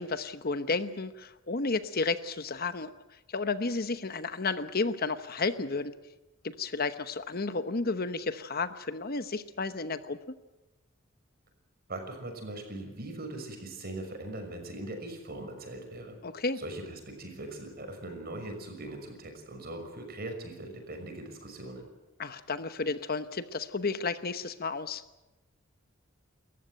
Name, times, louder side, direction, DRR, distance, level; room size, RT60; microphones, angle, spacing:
voice 1, 0.0-2.9 3.3-5.9 6.4-10.2 16.2-16.6 22.2-25.0, left 3 dB, 50° left, 11 dB, 1.0 m, -32 dB
voice 2, 11.9-16.2 16.6-21.9, right 1 dB, 50° right, 5 dB, 6.1 m, -40 dB
28.5 x 14.5 x 9.0 m, 1.0 s
head